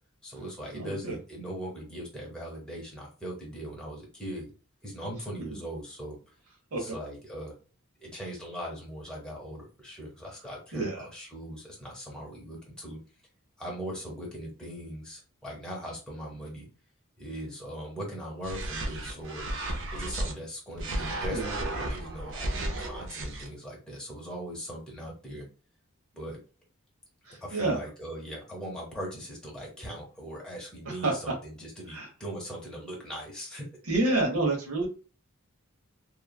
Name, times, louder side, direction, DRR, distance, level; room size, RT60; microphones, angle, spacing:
voice 1, 0.2-4.5 4.8-6.2 6.7-7.5 8.0-13.0 13.6-16.7 17.2-19.5 19.9-25.5 26.1-26.4 27.4-33.7, equal, 5° left, -4 dB, 0.8 m, -40 dB
voice 2, 0.7-1.2 5.5-5.6 6.7-7.0 10.7-11.1 21.3-21.6 27.2-27.8 30.8-31.3 31.9-32.1 33.9-34.9, right 2 dB, 90° right, 1 dB, 1.0 m, -29 dB
sound 1, 18.4-20.3 20.8-23.5, right 1 dB, 60° right, 0.6 m, -33 dB
3.1 x 2.2 x 2.2 m, 0.35 s
head